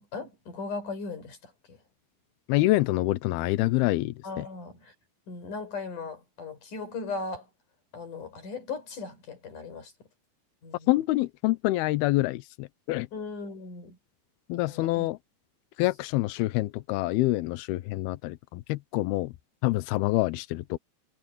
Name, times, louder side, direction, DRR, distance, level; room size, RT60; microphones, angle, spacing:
voice 1, 0.0-1.8 4.2-4.9 5.3-7.5 7.9-9.9 10.6-10.9 13.1-14.0 14.5-15.1, left 4 dB, 45° left, 6.7 m, -38 dB
voice 2, 2.5-4.5 10.9-13.1 14.5-15.2 15.8-19.3 19.6-20.8, left 18 dB, 85° left, 2.3 m, -26 dB
omnidirectional pair, 5.2 m